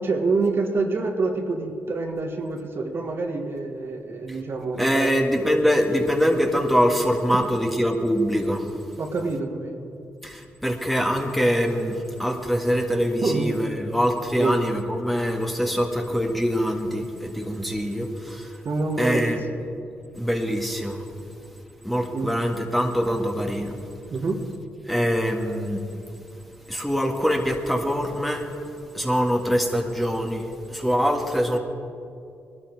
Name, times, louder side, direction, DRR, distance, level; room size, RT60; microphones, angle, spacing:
voice 1, 0.0-5.1 7.3-7.5 9.0-9.9 13.2-13.5 14.3-14.6 18.6-19.3 22.1-22.3 24.1-24.4, right 3 dB, 50° right, 3 dB, 1.6 m, -26 dB
voice 2, 4.8-8.6 10.2-18.6 19.0-19.4 20.1-21.0 21.8-23.8 24.9-25.8 26.7-28.5 28.9-31.6, equal, ahead, 2 dB, 1.8 m, -24 dB
19.0 x 12.0 x 4.8 m, 2.5 s
supercardioid pair, 60°, 5 cm